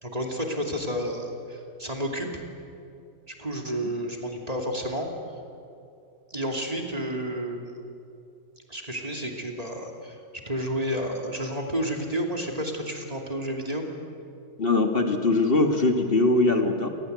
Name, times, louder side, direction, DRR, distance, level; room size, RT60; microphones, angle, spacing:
voice 1, 0.0-2.4 3.3-5.1 6.3-7.9 8.7-10.2 10.5-13.8, equal, 30° right, 1 dB, 2.8 m, -31 dB
voice 2, 14.6-16.9, left 2 dB, 50° left, 4 dB, 1.9 m, -21 dB
28.0 x 19.5 x 8.1 m, 2.6 s
omnidirectional pair, 1.3 m